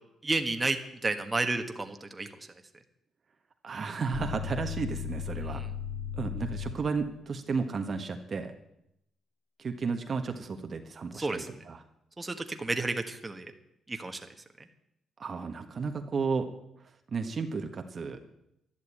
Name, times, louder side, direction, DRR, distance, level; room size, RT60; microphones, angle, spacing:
voice 1, 0.2-2.3 5.4-5.7 11.1-11.5 12.2-13.5 13.9-14.2, right 2 dB, 20° right, 6 dB, 1.5 m, -31 dB
voice 2, 3.6-5.6 6.2-8.5 9.6-11.8 15.2-16.5 17.1-18.2, right 5 dB, 45° right, 6 dB, 1.3 m, -33 dB
sound 1, 4.1-6.9, left 7 dB, 55° left, 1.5 m, -36 dB
11.5 x 11.5 x 8.7 m, 0.81 s
cardioid pair, 90°, 0 cm